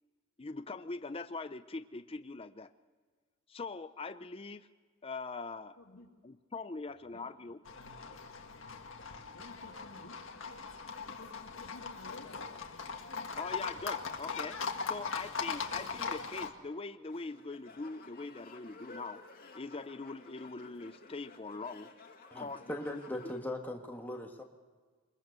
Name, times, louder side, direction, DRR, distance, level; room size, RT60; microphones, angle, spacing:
voice 1, 0.4-2.7 3.5-4.7 5.0-5.8 6.2-7.6 13.3-14.6 14.9-19.2 19.5-21.9 22.3-23.3, left 3 dB, 25° left, 10 dB, 0.6 m, -42 dB
voice 2, 5.8-6.1 7.1-7.5 9.3-10.2 11.0-12.5, left 2 dB, 85° left, -1 dB, 2.7 m, -53 dB
Livestock farm animals working animals, 7.7-16.5, left 5 dB, 60° left, 1.8 m, -40 dB
sound 1, 17.1-23.4, left 3 dB, 45° left, 2.5 m, -54 dB
voice 3, 22.3-24.4, left 1 dB, 10° left, 1 dB, 1.9 m, -40 dB
23.0 x 21.0 x 6.8 m, 1.5 s
head